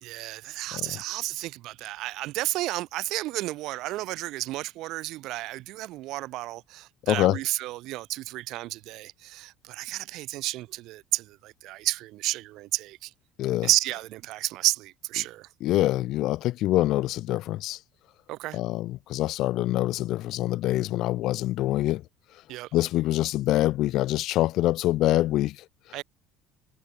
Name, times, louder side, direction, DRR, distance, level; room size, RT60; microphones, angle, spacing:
voice 1, 0.0-13.1 13.6-15.5 18.3-18.6 22.5-22.7 25.9-26.0, right 17 dB, 60° right, 1.0 m, -31 dB
voice 2, 7.1-7.4 13.4-13.7 15.6-17.8 18.5-22.0 22.7-26.0, left 15 dB, 55° left, 0.7 m, -25 dB
cardioid pair, 160°, 0 cm